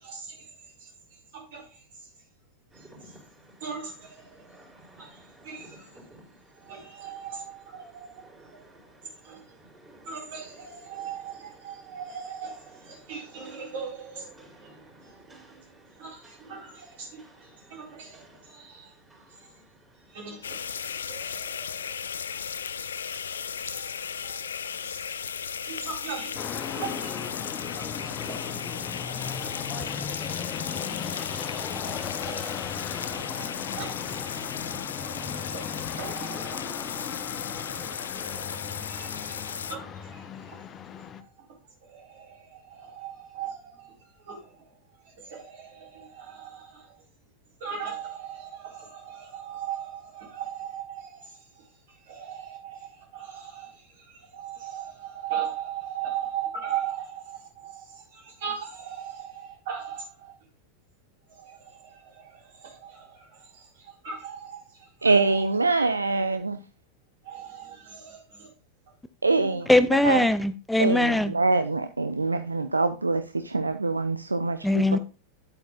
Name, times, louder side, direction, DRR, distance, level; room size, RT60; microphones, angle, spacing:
Rain, 2.7-21.4, right 1 dB, 15° right, 4.2 m, -55 dB
voice 1, 3.6-4.1 5.0-5.1 5.4-5.8 6.7-8.1 9.3-9.4 10.1-12.6 12.9-14.3 16.0-17.2 17.7-18.2 18.5-18.9 20.1-20.6 21.1-21.8 25.7-26.4 26.8-27.1 27.8-29.6 30.6-30.9 31.2-33.5 33.8-33.9 35.0-36.7 37.9-38.0 38.4-38.6 38.9-39.4 39.7-39.9 41.9-42.3 42.7-43.9 44.3-44.4 45.3-46.7 47.6-51.1 52.1-52.8 53.1-53.7 54.3-60.3 61.8-61.9 62.2-62.3 62.6-63.1 64.0-64.6 65.0-65.5 67.3-68.5 69.3-70.1, right 8 dB, 55° right, 3.8 m, -38 dB
sound 1, 20.4-39.8, left 7 dB, 70° left, 0.4 m, -35 dB
sound 2, 26.3-41.2, left 7 dB, 25° left, 0.7 m, -37 dB
voice 2, 65.0-66.6 69.2-69.7 70.0-70.2 70.8-75.0, right 3 dB, 80° right, 0.4 m, -24 dB
voice 3, 69.7-71.3 74.6-75.0, left 1 dB, 5° left, 0.3 m, -21 dB
10.5 x 8.1 x 2.3 m
figure-of-eight pair, 90°, 0 cm